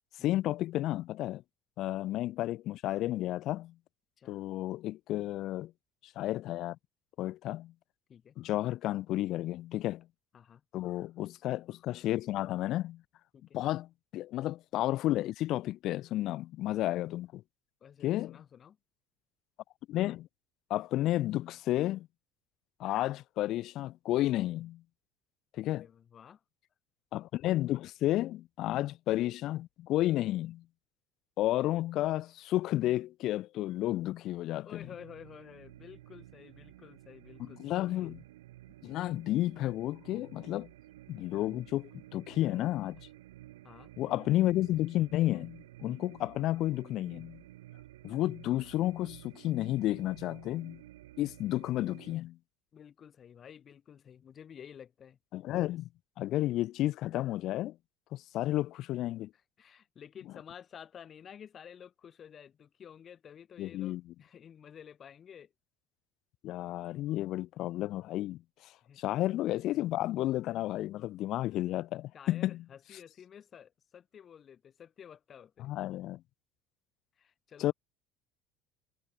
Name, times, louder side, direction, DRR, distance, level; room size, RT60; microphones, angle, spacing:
voice 1, 0.2-1.4 1.8-3.7 4.3-5.7 6.0-6.8 7.2-7.7 8.4-10.0 10.7-13.0 13.5-17.4 18.0-18.4 19.9-20.3 20.7-22.1 22.8-24.8 25.5-25.9 27.1-30.6 31.4-34.9 37.4-38.2 38.8-40.7 41.1-43.1 44.0-47.4 48.0-50.8 51.2-52.4 55.3-55.9 56.2-57.7 58.1-59.3 63.6-64.0 66.4-68.7 69.0-72.6 75.6-76.2 77.6-77.7, left 15 dB, 60° left, 0.8 m, -32 dB
voice 2, 17.8-18.8 25.7-26.4 34.6-38.1 43.6-43.9 52.7-55.2 55.6-55.7 59.6-65.5 68.8-69.2 72.1-75.7 77.2-77.7, left 8 dB, 40° left, 7.0 m, -52 dB
sound 1, 34.8-52.2, right 15 dB, 85° right, 3.1 m, -53 dB
hypercardioid pair, 75°, 0 cm